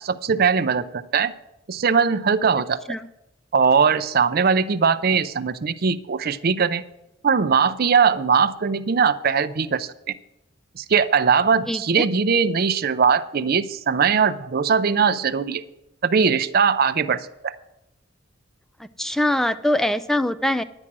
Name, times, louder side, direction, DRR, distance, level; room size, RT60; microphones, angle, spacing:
voice 1, 0.0-1.3 1.7-2.8 3.5-6.8 7.2-10.1 10.8-15.6 16.0-17.5, right 6 dB, 50° right, 12 dB, 0.5 m, -20 dB
voice 2, 11.7-12.0 19.0-20.6, left 1 dB, ahead, 11 dB, 0.3 m, -23 dB
9.8 x 9.8 x 6.1 m, 0.89 s
head